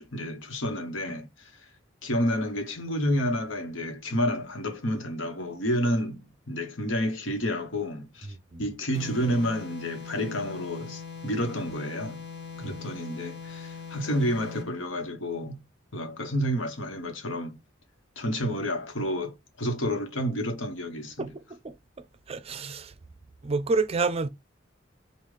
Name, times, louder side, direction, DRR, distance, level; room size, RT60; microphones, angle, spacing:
voice 1, 0.0-1.7 2.0-12.2 12.6-15.6 15.9-17.6 18.2-21.3, equal, 90° left, 1.2 m, -30 dB
sound 1, 8.9-14.8, left 6 dB, 60° left, 1.1 m, -41 dB
voice 2, 21.2-21.8 22.3-22.9 23.4-24.3, right 4 dB, 30° right, 0.4 m, -29 dB
5.4 x 2.4 x 3.3 m
head